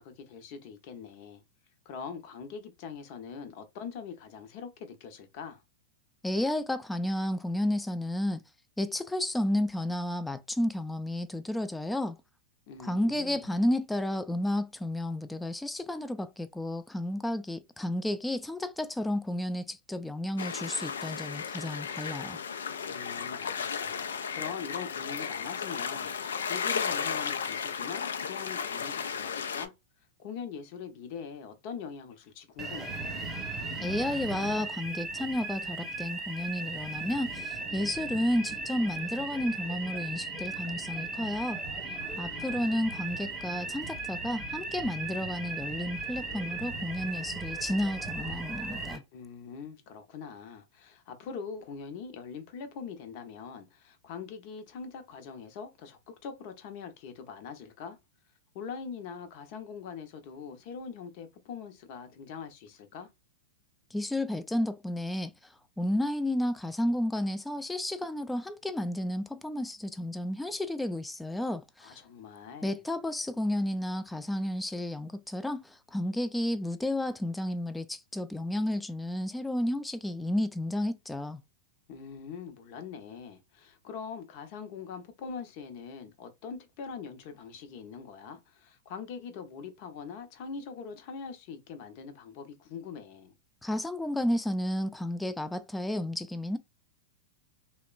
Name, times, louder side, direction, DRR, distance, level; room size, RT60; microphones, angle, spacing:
voice 1, 0.0-1.4 1.8-5.6 12.7-13.5 22.9-29.7 30.2-33.2 42.0-42.8 49.1-58.0 58.5-63.1 71.8-72.8 81.9-93.3, left 6 dB, 55° left, 0.7 m, -43 dB
voice 2, 6.2-8.4 8.8-12.2 12.8-22.4 33.8-41.6 42.2-49.0 63.9-65.3 65.8-72.0 72.6-81.4 93.6-96.6, left 1 dB, 5° left, 0.3 m, -32 dB
sound 1, 20.4-29.7, left 7 dB, 85° left, 0.4 m, -34 dB
sound 2, 32.6-49.0, right 3 dB, 20° right, 0.9 m, -37 dB
2.9 x 2.1 x 2.4 m
hypercardioid pair, 110°, 0 cm